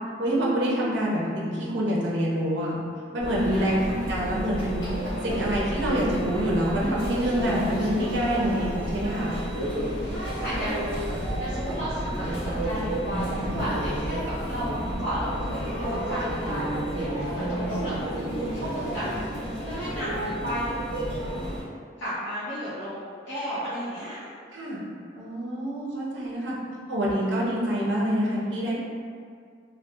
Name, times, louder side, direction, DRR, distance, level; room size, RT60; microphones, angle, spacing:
voice 1, 0.2-2.7 3.1-4.9 5.2-9.4 24.5-24.8 25.2-26.5 26.9-28.8, equal, 70° right, -5 dB, 0.5 m, -26 dB
Conversation / Chatter / Crowd, 3.2-21.6, equal, 25° left, 1.2 m, -31 dB
voice 2, 3.4-3.9 10.0-20.9 22.0-24.2 26.3-26.8, equal, 70° left, -13 dB, 0.6 m, -34 dB
2.6 x 2.1 x 2.2 m, 2.1 s
head